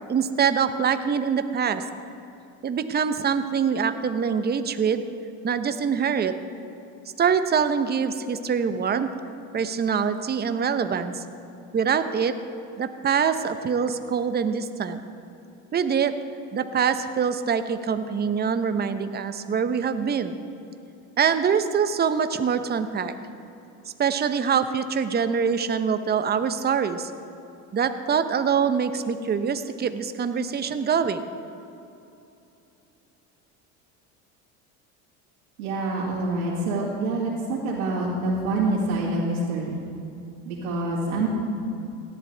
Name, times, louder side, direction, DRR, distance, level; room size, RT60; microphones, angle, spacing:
voice 1, 0.1-1.8 2.6-5.0 5.4-6.3 7.2-9.1 9.5-11.2 11.7-12.3 12.8-15.0 15.7-16.1 16.5-20.4 21.2-23.1 24.0-27.1 27.7-31.2, right 6 dB, 25° right, 9 dB, 0.8 m, -24 dB
voice 2, 35.6-39.8 40.5-41.3, right 2 dB, 90° right, -7 dB, 2.5 m, -26 dB
17.5 x 11.0 x 3.4 m, 2.8 s
hypercardioid pair, 85°, 41 cm